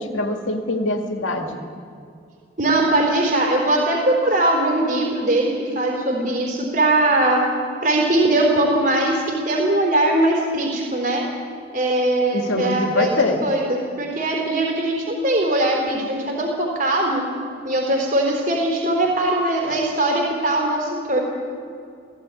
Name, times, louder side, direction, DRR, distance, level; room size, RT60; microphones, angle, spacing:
voice 1, 0.0-1.6 12.3-13.4, left 2 dB, 90° left, 4 dB, 2.1 m, -23 dB
voice 2, 2.6-7.4 7.8-11.2 11.7-17.2 17.6-21.2, right 1 dB, 45° right, 0 dB, 3.8 m, -20 dB
17.0 x 15.5 x 9.8 m, 2.4 s
head